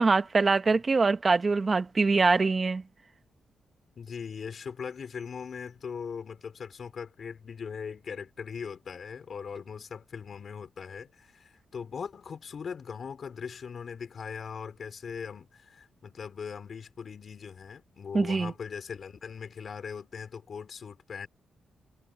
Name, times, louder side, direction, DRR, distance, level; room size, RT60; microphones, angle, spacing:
voice 1, 0.0-2.8 18.1-18.5, right 4 dB, 40° right, 1.5 m, -23 dB
voice 2, 4.0-21.3, left 6 dB, 60° left, 4.7 m, -40 dB
cardioid pair, 65°, 0 cm